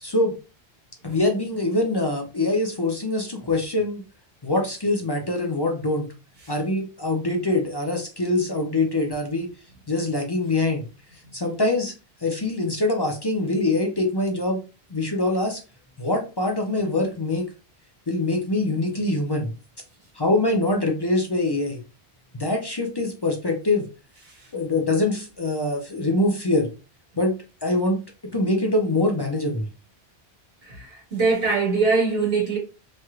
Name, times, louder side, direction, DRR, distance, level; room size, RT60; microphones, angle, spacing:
voice 1, 0.0-0.4 1.0-4.0 4.4-6.1 6.5-9.5 9.9-10.8 11.3-11.9 12.2-14.6 14.9-15.6 16.0-17.5 18.1-19.5 20.1-21.8 22.3-23.9 24.5-26.7 27.2-27.3 27.6-28.0 28.3-29.7, left 2 dB, 35° left, 0.4 m, -24 dB
voice 2, 30.6-32.6, right 4 dB, 70° right, 1.5 m, -22 dB
3.2 x 2.9 x 2.3 m
omnidirectional pair, 1.1 m